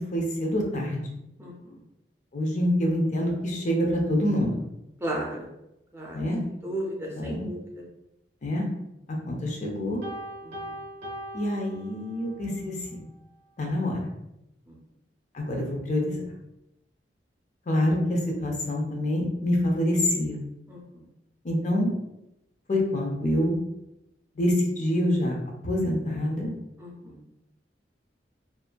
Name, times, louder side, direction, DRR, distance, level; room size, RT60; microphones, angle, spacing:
voice 1, 0.1-1.0 2.3-4.6 6.1-6.4 7.2-7.5 8.4-8.7 9.1-10.0 11.3-13.1 13.6-14.0 15.3-16.2 17.7-20.4 21.4-21.9 22.7-23.6 24.4-26.5, left 1 dB, 45° left, 0 dB, 0.6 m, -26 dB
voice 2, 1.4-1.8 5.0-5.5 5.9-6.2 6.6-7.8 10.4-10.8 14.7-14.8 20.7-21.1 26.8-27.2, right 1 dB, 15° right, -2 dB, 0.5 m, -35 dB
Piano, 10.0-12.4, equal, 70° right, 0.7 m, -39 dB
2.7 x 2.4 x 2.2 m, 0.87 s
head